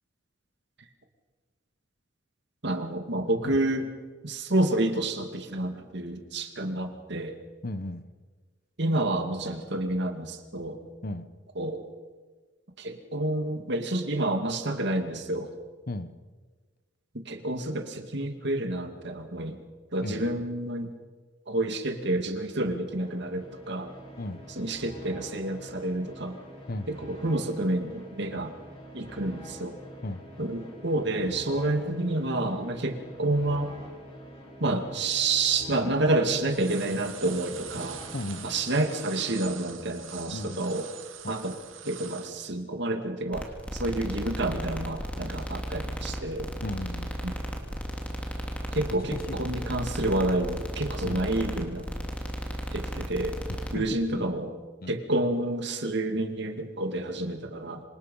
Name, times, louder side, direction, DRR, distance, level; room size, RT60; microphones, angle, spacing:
voice 1, 2.6-3.9 4.2-7.4 8.8-10.8 11.6-11.8 12.8-15.5 17.3-19.6 19.9-20.9 21.5-23.9 24.6-26.4 26.9-28.5 28.9-29.8 30.4-33.7 34.6-38.0 38.4-40.9 41.3-41.5 41.8-46.5 47.2-47.3 48.7-51.9 52.7-53.4 53.7-54.5 54.9-57.8, right 2 dB, 60° right, 6 dB, 2.3 m, -29 dB
voice 2, 7.6-8.1 11.0-11.3 15.9-16.1 20.0-20.4 24.2-24.4 26.7-26.9 30.0-30.2 38.1-38.6 40.3-40.7 41.2-41.3 46.6-47.1 48.9-49.4 51.0-51.2 53.5-54.3 54.8-54.9, left 1 dB, 50° left, 12 dB, 1.1 m, -36 dB
sound 1, 22.7-39.5, equal, 30° left, 6.7 m, -46 dB
sound 2, 36.0-36.1 36.3-42.3, right 10 dB, 85° right, 1.9 m, -44 dB
sound 3, 43.3-53.8, equal, 5° left, 2.5 m, -35 dB
26.5 x 25.5 x 5.6 m, 1.4 s
head